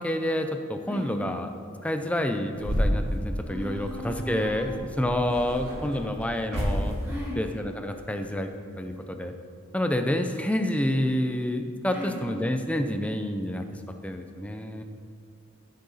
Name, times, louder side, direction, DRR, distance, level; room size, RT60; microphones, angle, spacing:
voice 1, 0.0-1.5 1.8-7.0 7.4-8.5 8.8-9.3 9.7-13.6 14.0-14.8, left 1 dB, 5° left, 6 dB, 0.5 m, -28 dB
sound 1, 2.5-7.4, equal, 55° right, 2.2 m, -31 dB
voice 2, 3.5-4.7 7.0-7.4 11.9-12.2, equal, 15° right, -12 dB, 2.7 m, -37 dB
15.0 x 6.7 x 4.1 m, 2.4 s
head